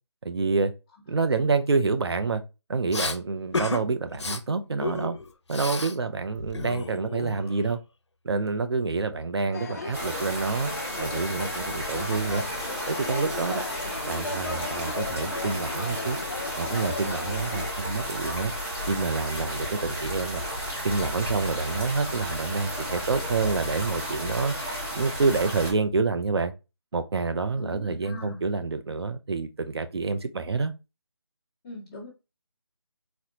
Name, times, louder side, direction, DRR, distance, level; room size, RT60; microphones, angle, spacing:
voice 1, 0.2-0.7 1.1-2.4 2.7-5.2 5.5-7.8 8.2-10.7 11.0-12.4 12.9-13.6 14.1-16.2 16.6-18.5 18.9-20.4 20.8-24.6 24.9-26.5 26.9-30.7, right 4 dB, 65° right, 0.5 m, -27 dB
Respiratory sounds, 2.9-3.2 3.5-3.8 4.1-4.4 4.8-6.0 6.2-7.7, left 3 dB, 85° left, 0.6 m, -32 dB
sound 1, 9.5-17.7, left 3 dB, 35° left, 0.5 m, -36 dB
sound 2, 9.9-25.7, equal, 10° right, 1.0 m, -33 dB
voice 2, 27.6-28.4 31.6-32.1, left 2 dB, 10° left, 1.0 m, -40 dB
4.1 x 2.1 x 2.8 m
figure-of-eight pair, 165°, 14 cm